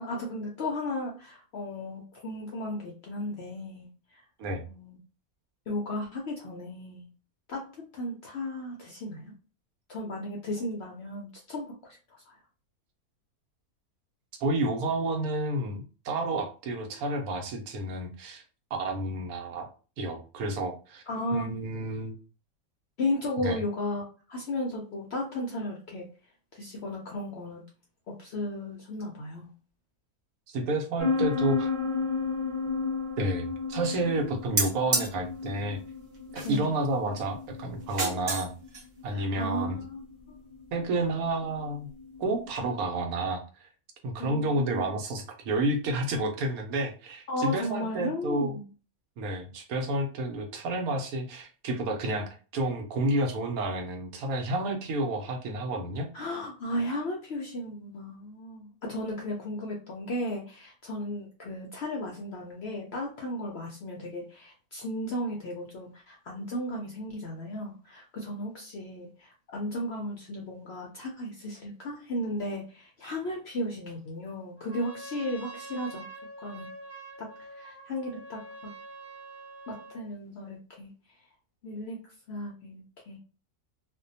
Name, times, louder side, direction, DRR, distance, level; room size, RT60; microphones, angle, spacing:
voice 1, 0.0-4.2 4.7-5.0 5.7-7.1 7.5-9.3 9.9-12.3 21.1-21.5 23.0-26.1 26.5-27.6 28.1-29.5 35.0-35.1 36.4-36.7 39.1-40.0 40.3-40.4 44.2-44.8 47.3-48.7 56.1-76.0 76.4-76.7 77.2-78.7 79.7-80.9 81.6-82.0 82.3-83.2, left 1 dB, 70° left, 0 dB, 0.6 m, -35 dB
voice 2, 14.4-18.4 18.8-19.7 20.0-21.0 21.3-22.1 23.4-23.6 30.5-31.7 33.2-35.8 36.3-38.5 39.0-39.8 40.7-41.9 42.2-43.7 44.0-48.6 49.2-56.1, right 2 dB, 75° right, 3 dB, 1.1 m, -30 dB
sound 1, 31.0-42.5, left 4 dB, 25° right, 0.7 m, -34 dB
sound 2, 34.6-35.1 36.4-36.8 37.8-38.5 38.7-38.8, right 3 dB, 60° right, 0.4 m, -29 dB
Trumpet, 74.6-80.1, right 2 dB, 20° left, 0.4 m, -45 dB
2.6 x 2.2 x 2.6 m, 0.36 s
omnidirectional pair, 1.6 m